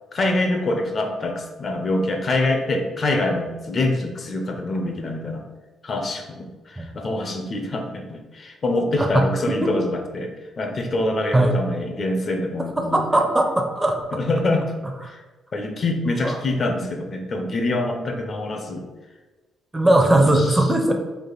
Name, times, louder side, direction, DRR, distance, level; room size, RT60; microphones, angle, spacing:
voice 1, 0.1-5.4 5.8-10.3 10.6-13.1 14.1-14.7 15.0-15.2 15.5-18.9 19.8-19.9 20.3-20.6, left 2 dB, 45° left, 4 dB, 0.6 m, -25 dB
voice 2, 9.0-9.3 9.6-9.7 11.3-11.6 12.8-14.0 16.2-16.4 19.7-20.9, right 1 dB, 15° right, 4 dB, 0.5 m, -19 dB
3.4 x 2.4 x 3.9 m, 1.2 s
cardioid pair, 90°, 0 cm